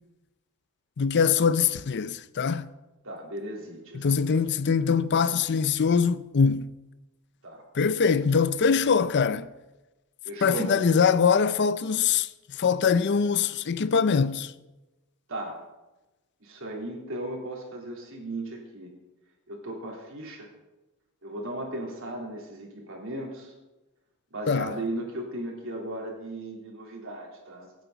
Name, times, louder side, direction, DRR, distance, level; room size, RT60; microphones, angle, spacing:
voice 1, 1.0-2.7 3.9-6.7 7.7-9.5 10.4-14.5 24.5-24.7, left 6 dB, 50° left, 0.5 m, -23 dB
voice 2, 3.0-4.4 7.4-7.6 10.2-10.9 15.3-15.6 16.4-18.9 19.5-20.5 21.2-23.5 24.3-27.7, right 1 dB, 65° right, 3.5 m, -36 dB
25.0 x 9.1 x 4.0 m
head